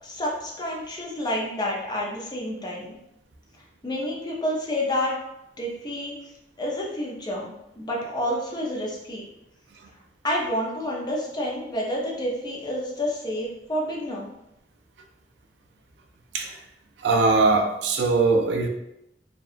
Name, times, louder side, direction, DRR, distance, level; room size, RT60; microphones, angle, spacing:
voice 1, 0.0-2.9 3.8-5.2 5.6-6.2 6.6-9.2 10.2-14.3, left 1 dB, 25° left, -3 dB, 0.5 m, -29 dB
voice 2, 17.0-18.7, right 3 dB, 75° right, 3 dB, 0.4 m, -21 dB
2.7 x 2.2 x 2.4 m, 0.85 s
head